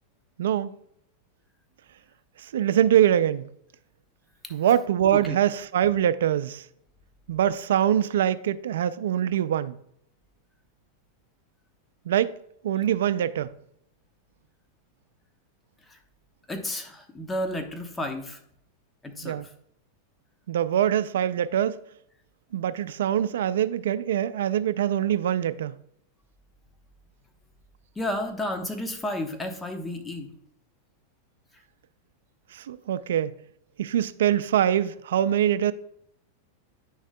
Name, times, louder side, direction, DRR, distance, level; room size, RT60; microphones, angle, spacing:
voice 1, 0.4-0.7 2.4-3.5 4.5-6.7 7.3-9.8 12.1-12.3 12.6-13.5 19.2-19.5 20.5-21.8 22.5-25.8 32.5-33.4 33.8-35.7, right 10 dB, 80° right, 0.3 m, -24 dB
voice 2, 16.5-18.4 19.0-19.5 27.9-30.3, left 1 dB, 10° left, 1.0 m, -32 dB
9.7 x 6.3 x 2.2 m
hypercardioid pair, 125°, 0 cm